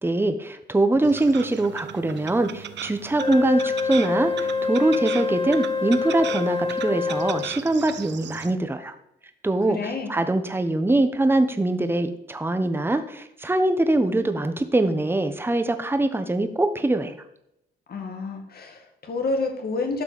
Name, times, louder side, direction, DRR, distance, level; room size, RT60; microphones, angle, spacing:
voice 1, 0.0-8.9 9.4-17.1, right 2 dB, 10° right, 8 dB, 1.1 m, -23 dB
sound 1, 1.0-8.5, right 10 dB, 65° right, 0.9 m, -38 dB
Wind instrument woodwind instrument, 3.2-7.6, left 4 dB, 30° left, 2.8 m, -26 dB
voice 2, 9.7-10.2 17.9-20.0, left 3 dB, 50° left, 4 dB, 2.1 m, -29 dB
12.5 x 4.7 x 7.7 m, 0.80 s
cardioid pair, 90°, 20 cm